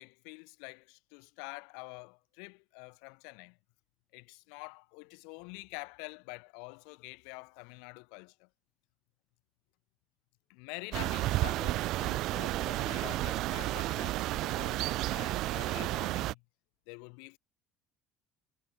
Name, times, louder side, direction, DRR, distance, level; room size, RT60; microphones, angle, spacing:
voice 1, 0.0-3.6 4.1-8.5 10.5-16.4 16.9-17.4, left 38 dB, 85° left, 5.9 m, -47 dB
sound 1, 10.9-16.3, right 17 dB, 60° right, 1.9 m, -32 dB
cardioid pair, 140°, 0 cm